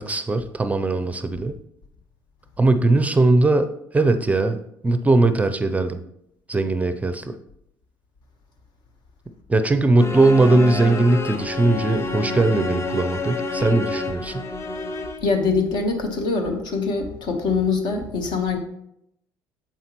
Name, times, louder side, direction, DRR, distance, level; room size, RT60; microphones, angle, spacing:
voice 1, 0.0-1.6 2.6-4.6 4.8-6.0 6.5-7.4 9.5-14.5, right 2 dB, 15° right, 10 dB, 0.5 m, -20 dB
sound 1, 10.0-15.4, left 3 dB, 30° left, 0.7 m, -28 dB
voice 2, 15.2-18.6, left 4 dB, 60° left, 4 dB, 1.2 m, -23 dB
7.2 x 5.6 x 3.0 m, 0.77 s
hypercardioid pair, 70°, 9 cm